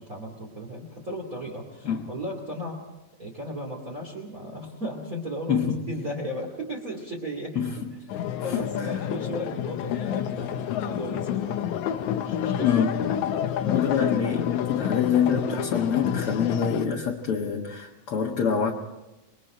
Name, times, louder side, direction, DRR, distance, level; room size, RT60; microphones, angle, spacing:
voice 1, 0.0-2.8 3.2-7.6 8.4-11.6 12.2-12.7, equal, 25° right, -1 dB, 2.8 m, -35 dB
voice 2, 5.5-5.8 7.6-7.9 8.4-8.9 12.6-13.0 13.6-18.7, left 7 dB, 50° left, -1 dB, 2.1 m, -26 dB
sound 1, 8.1-16.9, left 9 dB, 70° left, 2.0 m, -29 dB
27.5 x 21.5 x 4.4 m, 0.99 s
omnidirectional pair, 3.8 m